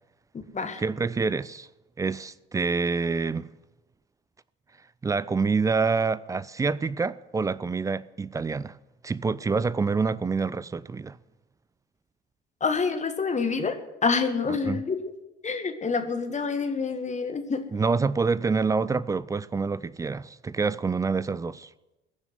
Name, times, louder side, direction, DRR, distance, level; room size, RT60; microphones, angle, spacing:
voice 1, 0.8-1.7 2.0-3.5 5.0-8.8 9.0-11.2 14.5-14.8 17.7-21.7, right 4 dB, 10° right, 0.4 m, -27 dB
voice 2, 12.6-15.0 15.4-17.6, left 5 dB, 20° left, 1.7 m, -27 dB
21.0 x 7.0 x 8.1 m
figure-of-eight pair, 65°, 33 cm